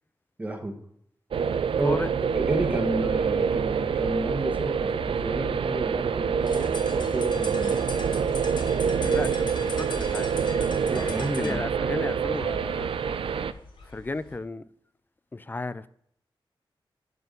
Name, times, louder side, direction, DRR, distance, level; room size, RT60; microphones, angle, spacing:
voice 1, 0.4-0.7 1.8-2.0 2.3-7.7 10.9-11.7, right 1 dB, 15° right, 1.2 m, -31 dB
sound 1, 1.3-13.5, right 6 dB, 85° right, 0.5 m, -26 dB
sound 2, 6.4-11.6, left 2 dB, 55° left, 1.5 m, -40 dB
sound 3, 7.6-14.4, left 2 dB, 80° left, 3.7 m, -48 dB
voice 2, 9.0-10.4 11.2-12.9 13.8-14.6 15.3-15.9, left 2 dB, 20° left, 0.3 m, -34 dB
10.5 x 4.4 x 6.7 m
wide cardioid pair, 155°, 9 cm